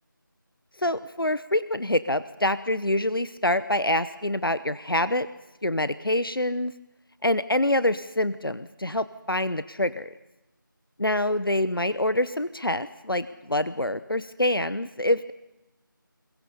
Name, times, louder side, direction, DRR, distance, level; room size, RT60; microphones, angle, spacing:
voice 1, 0.8-5.3 5.6-6.7 7.2-10.1 11.0-15.3, left 1 dB, 85° left, 14 dB, 0.9 m, -26 dB
28.5 x 22.0 x 5.5 m, 0.95 s
figure-of-eight pair, 170°, 11 cm